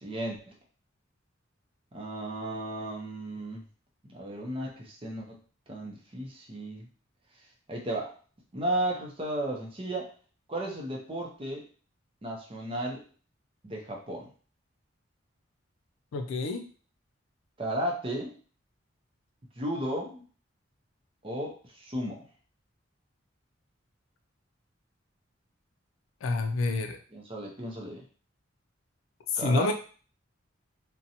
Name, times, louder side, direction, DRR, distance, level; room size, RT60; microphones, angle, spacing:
voice 1, 0.0-0.6 1.9-3.6 4.1-5.4 5.7-6.9 7.7-8.1 8.5-10.1 10.5-11.6 12.2-13.0 13.6-14.3 17.6-18.4 19.6-20.2 21.2-22.3 27.1-28.0 29.4-29.7, right 1 dB, 30° right, -1 dB, 0.6 m, -34 dB
voice 2, 16.1-16.7 26.2-27.0 29.3-29.7, left 3 dB, 85° left, 6 dB, 0.3 m, -28 dB
2.6 x 2.1 x 2.7 m, 0.40 s
head